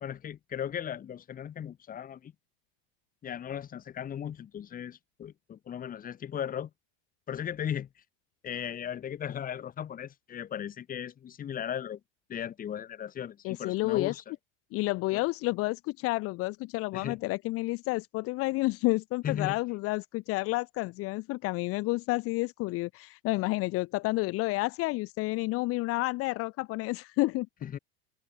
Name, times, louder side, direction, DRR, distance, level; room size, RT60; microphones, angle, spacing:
voice 1, 0.0-2.3 3.2-6.7 7.3-7.9 8.4-12.0 12.3-14.2 15.1-15.2 16.9-17.2 19.2-19.6 27.6-27.8, left 9 dB, 30° left, 1.8 m, -37 dB
voice 2, 13.4-14.2 14.7-27.5, left 22 dB, 50° left, 0.9 m, -30 dB
supercardioid pair, 130°, 30 cm